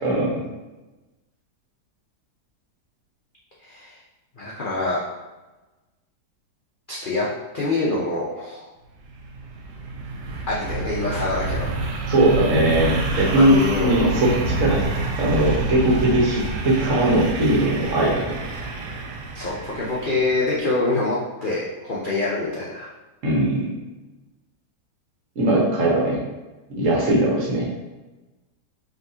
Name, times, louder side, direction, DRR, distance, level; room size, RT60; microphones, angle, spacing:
voice 1, 0.0-0.4 12.1-14.9 15.2-18.4 23.2-23.8 25.3-26.2 26.7-27.7, right 1 dB, 50° right, -4 dB, 1.4 m, -20 dB
voice 2, 3.6-4.0 4.4-5.0 6.9-7.3 7.5-8.7 10.5-11.7 13.3-14.1 19.3-22.9, left 2 dB, 70° left, -6 dB, 0.4 m, -25 dB
sound 1, 9.0-20.7, right 2 dB, 80° right, 1.2 m, -28 dB
5.1 x 3.1 x 2.8 m, 1.1 s
omnidirectional pair, 1.9 m